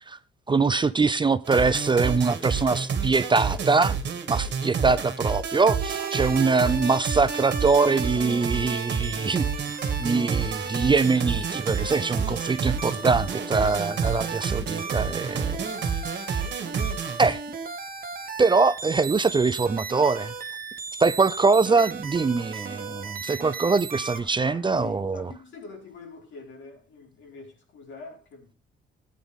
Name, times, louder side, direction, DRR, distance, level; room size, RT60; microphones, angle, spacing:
voice 1, 0.5-4.0 4.3-9.5 10.0-15.6 16.3-16.4 17.2-17.4 18.4-20.3 21.0-25.3, right 4 dB, 25° right, 0.5 m, -23 dB
sound 1, 1.4-17.3, right 6 dB, 60° right, 2.3 m, -29 dB
sound 2, 5.8-24.2, right 5 dB, 45° right, 1.7 m, -37 dB
voice 2, 24.2-28.6, left 4 dB, 70° left, 5.0 m, -45 dB
16.0 x 9.6 x 3.6 m
cardioid pair, 90°, 20 cm